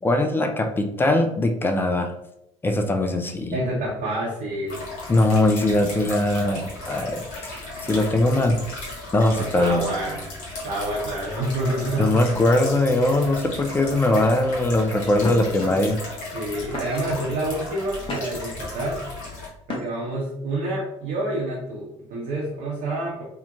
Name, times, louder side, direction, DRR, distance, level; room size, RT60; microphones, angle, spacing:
voice 1, 0.0-2.1 2.6-3.6 5.1-8.6 9.1-9.8 12.0-16.0, left 1 dB, 15° left, 5 dB, 0.3 m, -21 dB
voice 2, 3.5-4.8 9.4-10.2 10.6-12.4 15.7-15.8 16.3-19.0 19.7-23.2, right 1 dB, 55° right, -4 dB, 0.7 m, -28 dB
sound 1, 4.7-19.5, left 2 dB, 60° left, 1.2 m, -35 dB
sound 2, 15.2-15.6 16.3-16.4 16.7-17.2 17.7-18.5 19.6-20.2, left 1 dB, 30° left, 0.8 m, -33 dB
2.7 x 2.1 x 2.5 m, 0.81 s
figure-of-eight pair, 55°, 16 cm